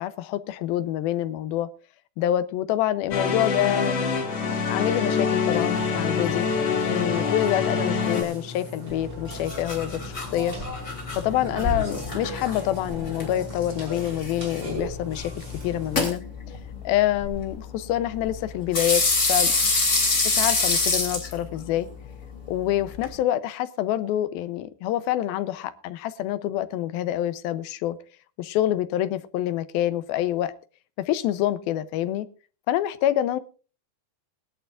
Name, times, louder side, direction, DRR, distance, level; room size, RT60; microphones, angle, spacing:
voice 1, 0.0-1.7 2.2-4.0 4.7-6.5 6.9-10.6 11.2-16.2 16.8-19.0 19.3-19.5 20.2-21.9 22.5-28.0 28.4-30.5 31.0-32.3 32.7-33.4, left 12 dB, 85° left, 14 dB, 2.6 m, -26 dB
sound 1, 3.1-8.2, left 5 dB, 45° left, 2.7 m, -25 dB
Burping eructation, 5.4-16.0, left 1 dB, 30° right, 5.9 m, -38 dB
sound 2, 8.9-23.1, left 3 dB, 20° left, 3.4 m, -28 dB
21.0 x 11.5 x 2.5 m, 0.36 s
omnidirectional pair, 4.3 m